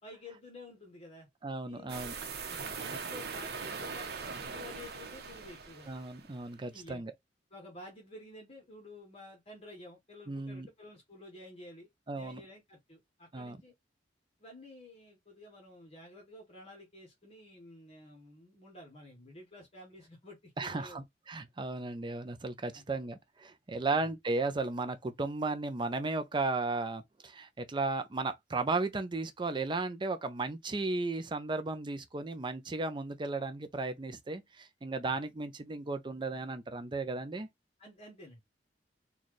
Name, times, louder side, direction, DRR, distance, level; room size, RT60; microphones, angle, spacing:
voice 1, 0.0-1.3 1.7-2.3 2.7-5.9 6.6-7.0 7.5-13.7 14.4-21.0 22.7-22.8 23.8-24.1 35.0-35.2 37.8-38.4, left 1 dB, 35° left, 1.2 m, -51 dB
voice 2, 1.4-2.1 5.9-7.1 10.3-10.7 12.1-12.4 13.3-13.6 20.6-37.5, right 3 dB, 25° right, 0.5 m, -35 dB
sound 1, 1.9-6.4, right 5 dB, 65° right, 0.9 m, -41 dB
4.1 x 2.3 x 3.1 m
head